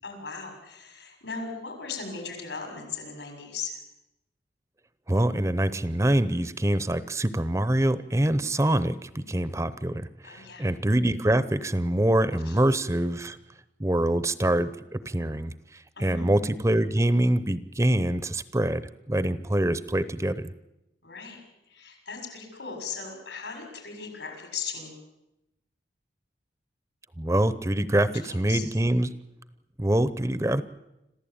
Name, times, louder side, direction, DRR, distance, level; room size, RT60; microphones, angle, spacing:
voice 1, 0.0-3.8 10.2-10.7 12.4-12.6 15.9-16.3 21.0-21.4 21.7-25.0 28.2-28.7, left 5 dB, 80° left, 4 dB, 6.8 m, -38 dB
voice 2, 5.1-13.4 13.8-20.5 27.2-29.1 29.8-30.6, right 1 dB, 15° right, 14 dB, 0.7 m, -25 dB
26.5 x 15.0 x 8.8 m, 0.92 s
head